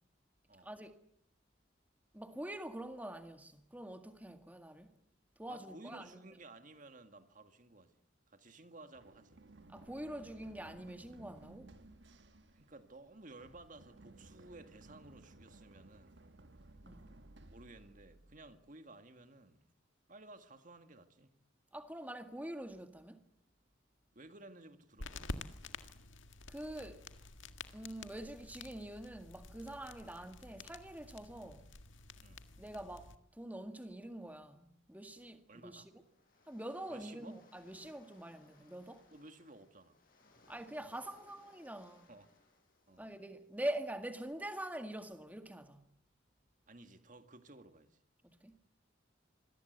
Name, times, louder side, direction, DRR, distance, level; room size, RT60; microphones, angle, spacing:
voice 1, 0.6-1.0 2.1-4.9 5.4-6.3 9.7-11.7 16.8-17.1 21.7-23.3 26.5-27.1 27.7-31.7 32.6-35.8 36.5-39.1 40.5-42.1 43.0-45.9 48.2-48.6, right 1 dB, 10° right, 1.8 m, -45 dB
voice 2, 5.5-8.0 8.3-9.4 12.5-16.2 17.5-19.7 20.1-21.3 24.2-25.3 32.2-32.5 35.5-35.9 36.9-37.4 39.1-40.0 42.1-42.3 42.9-43.1 46.7-48.0, right 2 dB, 40° right, 1.8 m, -55 dB
Run, 8.9-18.7, right 2 dB, 65° right, 1.5 m, -58 dB
sound 1, 25.0-33.1, left 3 dB, 85° left, 1.8 m, -49 dB
Waves surf, 35.5-43.7, left 2 dB, 45° left, 6.9 m, -67 dB
26.5 x 22.0 x 8.0 m
head